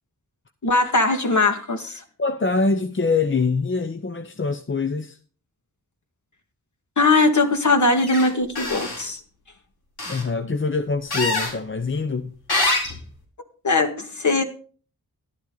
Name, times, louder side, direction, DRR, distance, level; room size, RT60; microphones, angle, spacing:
voice 1, 0.6-2.0 7.0-9.2 13.6-14.4, left 3 dB, 50° left, 1.9 m, -20 dB
voice 2, 2.2-5.2 10.1-12.3, left 4 dB, 35° left, 0.8 m, -24 dB
sound 1, 8.0-8.3 8.5-9.0 10.0-10.2 11.1-11.5 12.5-13.0, left 2 dB, 80° left, 4.5 m, -24 dB
12.5 x 10.0 x 4.0 m
wide cardioid pair, 65°, 38 cm